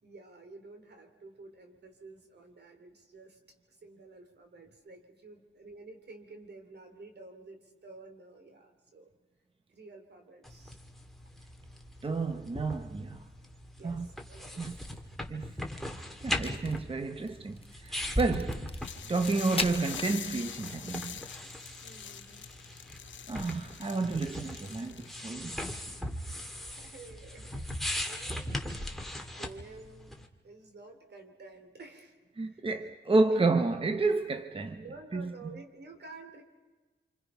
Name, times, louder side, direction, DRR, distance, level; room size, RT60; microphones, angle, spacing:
voice 1, 0.0-3.4 3.7-9.1 9.7-10.8 13.7-14.6 21.8-22.5 26.5-29.0 29.4-32.2 32.4-32.8 33.3-33.4 34.7-36.4, right 3 dB, 65° right, 3.4 m, -51 dB
sound 1, 10.4-30.3, left 1 dB, ahead, 2.2 m, -39 dB
voice 2, 12.0-13.2 13.8-14.1 14.6-14.8 15.3-15.5 16.2-18.6 19.1-21.2 23.3-25.8 32.4-34.8 35.1-35.3, right 3 dB, 30° right, 1.0 m, -30 dB
Crack, 16.2-20.8, left 4 dB, 30° left, 0.8 m, -42 dB
sound 2, 18.8-25.3, left 9 dB, 85° left, 0.8 m, -45 dB
27.0 x 26.5 x 5.7 m
cardioid pair, 80°, 19 cm